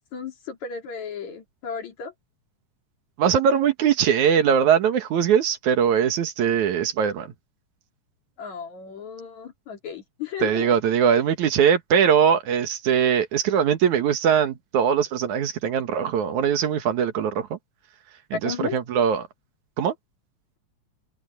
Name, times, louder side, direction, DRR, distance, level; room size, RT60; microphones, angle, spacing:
voice 1, 0.1-2.1 8.4-10.7 18.4-18.8, left 7 dB, 65° left, 4.3 m, -34 dB
voice 2, 3.2-7.3 10.4-17.6 18.3-19.3 19.8-19.9, right 8 dB, 75° right, 2.9 m, -21 dB
omnidirectional pair, 3.5 m